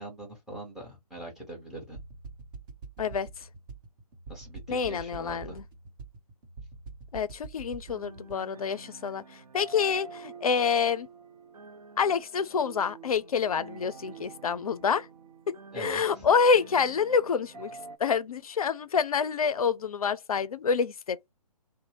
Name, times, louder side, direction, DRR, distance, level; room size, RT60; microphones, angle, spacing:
voice 1, 0.0-2.0 4.3-5.6 15.7-16.3, right 2 dB, ahead, 1.1 m, -42 dB
sound 1, 1.9-8.3, right 4 dB, 30° right, 1.0 m, -45 dB
voice 2, 3.0-3.3 4.7-5.6 7.1-11.1 12.0-15.1 15.5-17.7 18.0-21.3, left 6 dB, 60° left, 0.5 m, -27 dB
sound 2, 7.9-18.0, right 5 dB, 70° right, 0.5 m, -48 dB
2.7 x 2.1 x 3.1 m
figure-of-eight pair, 135°, 21 cm